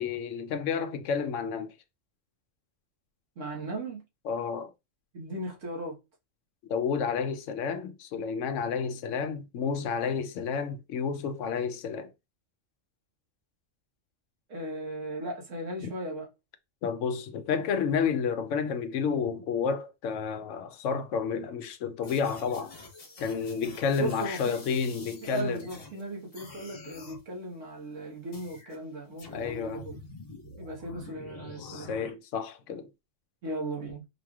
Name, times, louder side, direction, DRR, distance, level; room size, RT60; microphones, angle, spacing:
voice 1, 0.0-1.7 4.2-4.7 6.7-12.1 15.8-15.9 16.8-22.7 23.2-25.7 29.3-29.9 31.6-32.9, left 6 dB, 75° left, 1.0 m, -30 dB
voice 2, 3.4-4.0 5.1-6.0 14.5-16.3 24.0-24.6 25.2-30.0 30.6-31.9 33.4-34.0, right 1 dB, 75° right, 1.7 m, -37 dB
sound 1, 22.0-26.0 26.3-27.2 28.3-28.8 29.2-32.1, left 2 dB, 50° left, 1.3 m, -47 dB
4.6 x 3.1 x 2.4 m
omnidirectional pair, 1.3 m